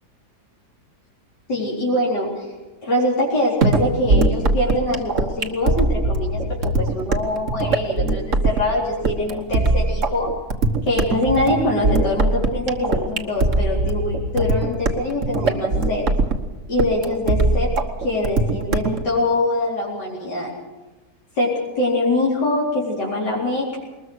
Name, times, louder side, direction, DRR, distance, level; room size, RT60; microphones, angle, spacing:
voice 1, 1.5-2.5 2.8-10.3 10.9-16.1 16.7-17.7 18.0-20.5 21.3-23.8, left 1 dB, 85° left, -5 dB, 4.9 m, -23 dB
sound 1, 3.6-19.0, right 2 dB, 50° right, 1.7 m, -21 dB
21.5 x 20.5 x 6.4 m, 1.1 s
omnidirectional pair, 1.8 m